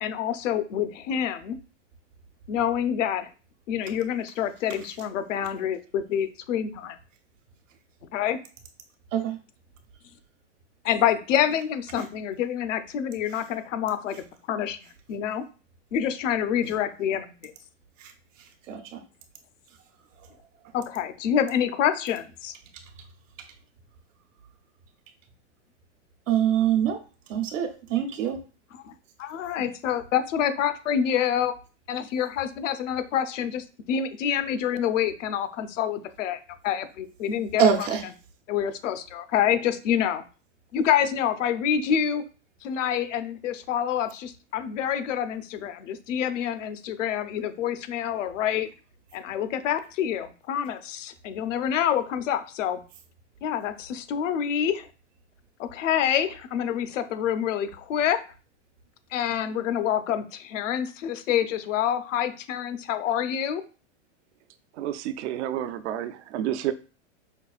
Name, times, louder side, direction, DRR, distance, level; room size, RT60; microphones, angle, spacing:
voice 1, 0.0-1.6 2.5-3.3 3.7-7.0 8.1-8.4 10.8-14.8 15.1-15.4 15.9-17.5 20.7-22.5 28.9-29.0 29.2-31.5 31.9-37.6 38.5-40.2 40.7-42.2 42.6-48.7 49.1-52.8 53.4-54.9 55.6-58.2 59.1-63.6, left 9 dB, 80° left, 0.7 m, -27 dB
voice 2, 18.4-19.0 26.3-27.0 27.3-28.4 37.6-38.0, right 8 dB, 90° right, 0.9 m, -24 dB
voice 3, 64.7-66.7, right 12 dB, 65° right, 0.5 m, -30 dB
5.4 x 2.3 x 2.4 m
supercardioid pair, 150°, 37 cm